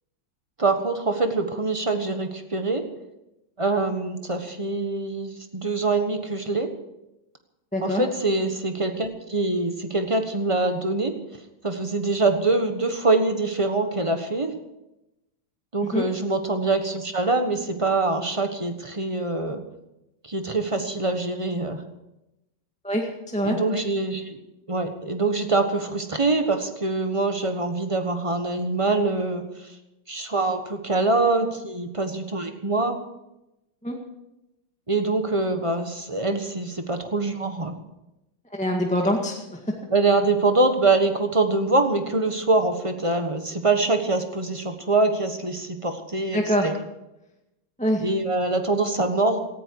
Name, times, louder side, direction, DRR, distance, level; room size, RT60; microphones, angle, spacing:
voice 1, 0.6-2.8 3.6-6.7 7.8-11.1 11.6-14.5 15.7-19.6 20.3-21.8 23.4-24.4 24.7-29.5 30.1-33.0 34.9-37.7 39.9-46.7 48.0-49.4, right 3 dB, 20° right, 6 dB, 1.1 m, -24 dB
voice 2, 7.7-8.0 15.8-16.0 22.8-23.6 33.8-34.0 38.5-39.6 46.3-46.7 47.8-48.0, equal, 5° left, 1 dB, 1.6 m, -24 dB
18.0 x 14.5 x 4.7 m, 0.92 s
omnidirectional pair, 2.3 m